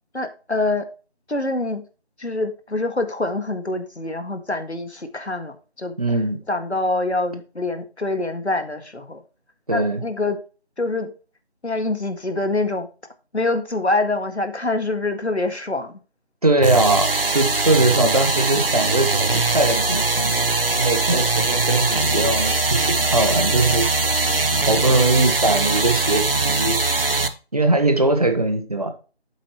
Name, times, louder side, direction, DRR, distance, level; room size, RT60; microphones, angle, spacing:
voice 1, 0.1-0.9 1.3-1.8 2.2-6.0 6.5-9.2 9.7-10.4 10.8-11.1 11.6-12.9 13.3-16.0, left 2 dB, 80° left, 2.0 m, -25 dB
voice 2, 6.0-6.4 9.7-10.0 16.4-23.9 24.7-26.8 27.5-28.9, right 2 dB, 35° right, 1.2 m, -21 dB
sound 1, 16.6-27.3, right 3 dB, 60° right, 1.0 m, -21 dB
8.3 x 7.6 x 3.0 m
figure-of-eight pair, 165°, 33 cm